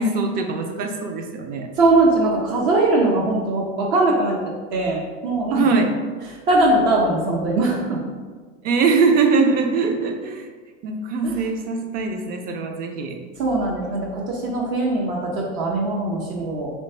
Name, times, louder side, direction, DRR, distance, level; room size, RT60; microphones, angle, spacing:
voice 1, 0.0-1.7 5.5-5.9 8.6-10.5 10.8-13.2, right 4 dB, 25° right, 5 dB, 0.4 m, -21 dB
voice 2, 1.8-5.6 6.5-8.0 11.2-11.4 13.4-16.7, right 2 dB, 65° right, -2 dB, 0.9 m, -21 dB
3.3 x 3.1 x 4.3 m, 1.5 s
supercardioid pair, 135°, 36 cm